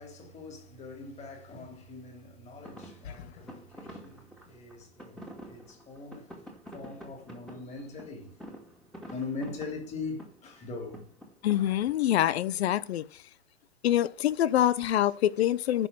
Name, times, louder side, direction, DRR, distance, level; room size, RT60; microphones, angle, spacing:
voice 1, 0.0-6.3 6.7-8.3 9.1-11.0 11.6-11.7, left 3 dB, 20° left, 3.6 m, -41 dB
sound 1, 2.6-12.6, equal, ahead, 2.3 m, -48 dB
voice 2, 11.4-13.2 13.8-15.9, left 12 dB, 60° left, 0.8 m, -25 dB
10.0 x 6.3 x 5.9 m
hypercardioid pair, 130°, 35 cm